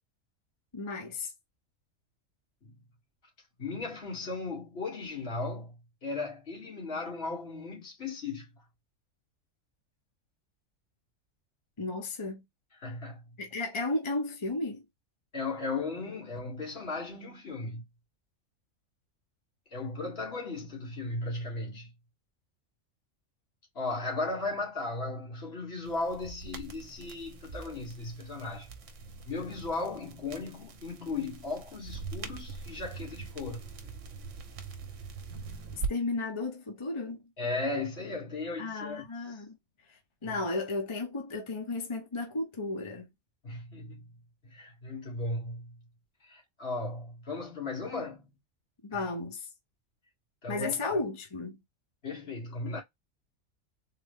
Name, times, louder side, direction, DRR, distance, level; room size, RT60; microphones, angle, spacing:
voice 1, 0.7-1.3 11.8-12.4 13.4-14.8 35.9-37.2 38.6-39.5 40.2-43.0 48.8-49.5 50.5-51.6, left 3 dB, 30° left, 0.7 m, -33 dB
voice 2, 3.6-8.5 12.8-13.2 15.3-17.9 19.7-21.9 23.8-28.7 29.3-33.6 37.4-39.0 40.2-40.4 43.4-44.0 44.5-45.8 46.2-48.3 48.9-49.0 50.4-51.0 52.0-52.8, left 3 dB, 50° left, 1.8 m, -36 dB
sound 1, 25.8-35.9, right 4 dB, 65° right, 1.1 m, -42 dB
3.8 x 2.1 x 3.4 m
omnidirectional pair, 1.4 m